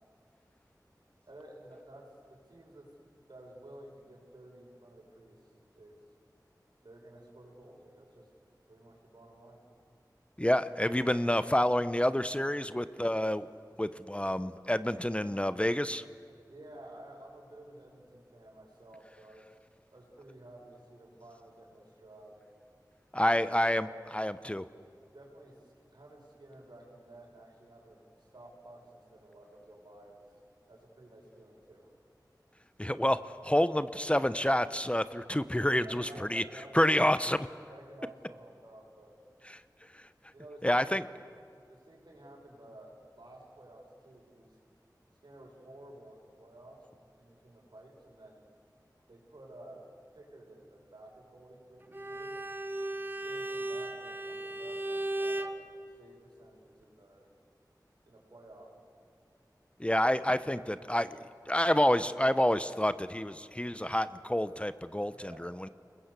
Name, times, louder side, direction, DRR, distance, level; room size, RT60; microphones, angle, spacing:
voice 1, 1.2-2.9 3.3-5.5 5.7-6.0 6.8-8.3 8.7-9.6 16.5-19.5 19.9-22.4 23.2-23.4 23.6-23.9 25.1-30.3 30.7-31.9 35.8-37.2 37.7-39.2 40.3-41.2 41.7-44.6 45.2-48.5 49.1-49.8 50.1-52.4 53.0-54.8 55.2-55.6 56.0-57.3 58.1-58.7 65.1-65.4, right 1 dB, 90° right, -1 dB, 6.2 m, -53 dB
voice 2, 10.4-13.5 13.8-16.0 23.1-23.9 24.1-24.6 32.8-36.4 36.7-37.5 39.5-39.6 39.9-40.0 40.6-41.0 59.8-61.2 61.5-65.7, left 1 dB, 15° left, 13 dB, 0.8 m, -28 dB
Bowed string instrument, 51.9-55.6, right 1 dB, 30° right, 1.5 m, -36 dB
30.0 x 21.5 x 8.2 m, 2.3 s
wide cardioid pair, 50°, 7 cm